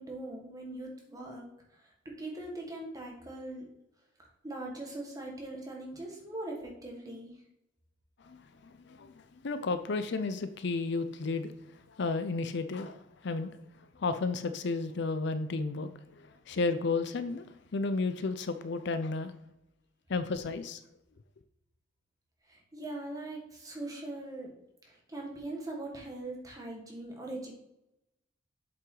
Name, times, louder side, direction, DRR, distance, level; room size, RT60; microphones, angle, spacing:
voice 1, 0.0-1.4 1.7-3.6 4.2-7.4 22.5-24.5 24.8-27.5, right 2 dB, 20° right, 1.7 m, -41 dB
voice 2, 8.6-11.5 11.9-13.5 14.0-17.5 17.7-19.3 20.1-20.8, left 3 dB, 60° left, 0.5 m, -33 dB
7.7 x 5.8 x 3.9 m
head